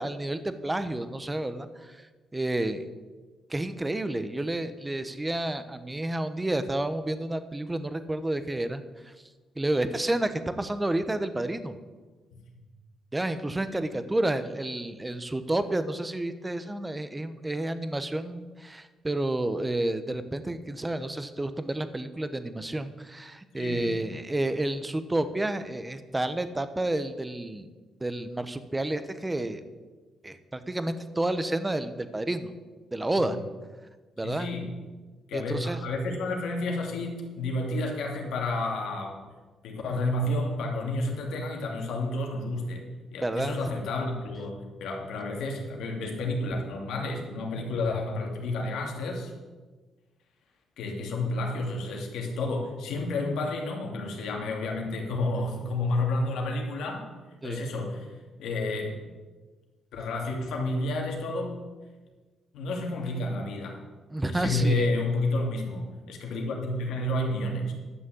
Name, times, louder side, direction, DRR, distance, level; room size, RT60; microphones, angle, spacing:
voice 1, 0.0-2.0 2.3-2.8 3.5-9.1 9.6-11.7 13.1-27.7 28.0-29.6 30.2-32.5 32.9-33.4 34.2-34.5 35.3-35.8 43.2-43.8 57.4-57.6 64.1-64.9, right 1 dB, 15° right, 11 dB, 0.9 m, -30 dB
voice 2, 23.6-24.1 33.2-33.4 34.2-34.7 35.3-39.1 39.6-42.8 43.1-49.3 50.8-57.0 57.4-58.1 58.4-58.9 59.9-61.6 62.5-63.8 64.3-67.7, left 2 dB, 80° left, 0 dB, 2.6 m, -30 dB
11.0 x 6.4 x 8.4 m, 1.3 s
cardioid pair, 90°, 0 cm